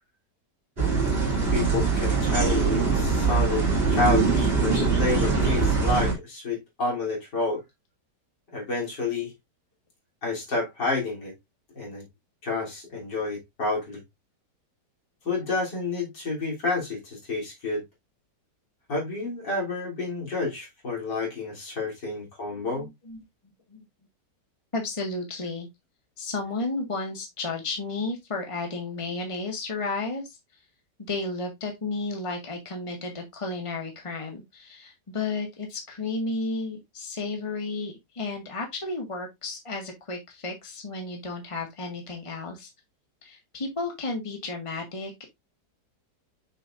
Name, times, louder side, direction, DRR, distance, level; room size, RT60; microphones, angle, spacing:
sound 1, 0.8-6.1, right 4 dB, 35° right, 2.7 m, -23 dB
voice 1, 1.5-3.7 3.9-7.6 8.5-9.3 10.2-11.3 11.8-12.1 12.4-14.0 15.3-17.8 18.9-22.9, left 3 dB, 75° left, 3.9 m, -29 dB
voice 2, 22.5-23.2 23.7-23.8 24.7-25.7 26.2-30.2 31.0-42.7 43.2-45.3, left 3 dB, 20° left, 1.7 m, -33 dB
6.6 x 6.3 x 2.5 m
omnidirectional pair, 1.9 m